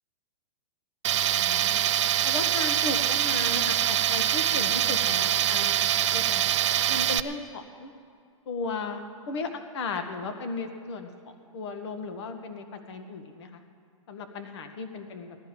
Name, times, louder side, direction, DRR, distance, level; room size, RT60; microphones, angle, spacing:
Tools, 1.0-7.2, right 11 dB, 60° right, 0.5 m, -24 dB
voice 1, 1.3-1.9 2.2-6.5 6.9-7.9 8.4-11.1 11.5-13.6 14.1-15.4, left 3 dB, 50° left, 7 dB, 1.5 m, -36 dB
17.5 x 13.0 x 5.2 m, 2.2 s
hypercardioid pair, 155°, 17 cm